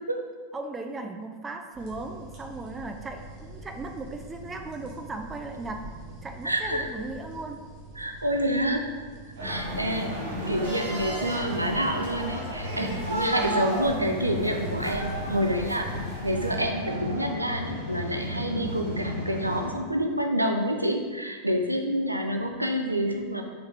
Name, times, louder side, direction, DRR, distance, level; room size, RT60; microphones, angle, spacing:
voice 1, 0.5-5.8 6.2-7.6 13.4-14.1, right 3 dB, 15° right, 4 dB, 0.4 m, -37 dB
sound 1, 1.7-16.6, right 2 dB, 40° right, 1.4 m, -45 dB
voice 2, 6.4-6.9 8.0-8.9 9.4-10.1 10.5-23.4, equal, 85° right, 3 dB, 0.4 m, -28 dB
sound 2, 9.4-19.7, equal, 65° right, 1.1 m, -33 dB
sound 3, 9.6-16.6, right 1 dB, 25° left, 1.3 m, -46 dB
4.4 x 3.2 x 3.4 m, 1.5 s
figure-of-eight pair, 90°, 0 cm